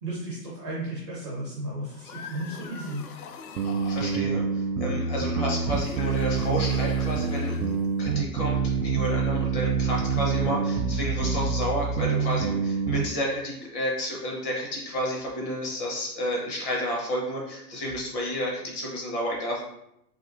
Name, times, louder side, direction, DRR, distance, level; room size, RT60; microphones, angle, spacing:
voice 1, 0.0-3.0, right 1 dB, 20° right, -5 dB, 0.3 m, -34 dB
sound 1, 1.8-4.3 5.6-8.1, left 6 dB, 65° left, 0.5 m, -44 dB
sound 2, 3.6-13.0, right 5 dB, 80° right, 0.5 m, -26 dB
voice 2, 3.8-19.6, equal, 30° left, -2 dB, 0.8 m, -31 dB
3.5 x 2.3 x 2.5 m, 0.80 s
hypercardioid pair, 130°, 48 cm